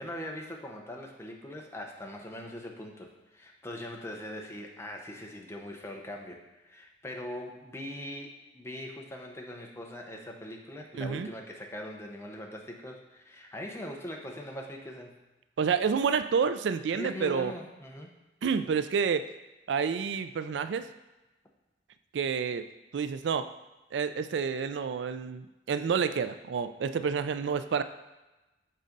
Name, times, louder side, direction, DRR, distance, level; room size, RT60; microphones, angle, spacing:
voice 1, 0.0-15.2 16.9-18.1, left 1 dB, 15° left, 1 dB, 0.9 m, -41 dB
voice 2, 10.9-11.3 15.6-17.5 18.4-19.2 19.7-20.9 22.1-22.7 22.9-23.5 23.9-27.8, right 6 dB, 85° right, 11 dB, 0.4 m, -29 dB
7.4 x 4.1 x 5.2 m, 1.1 s
head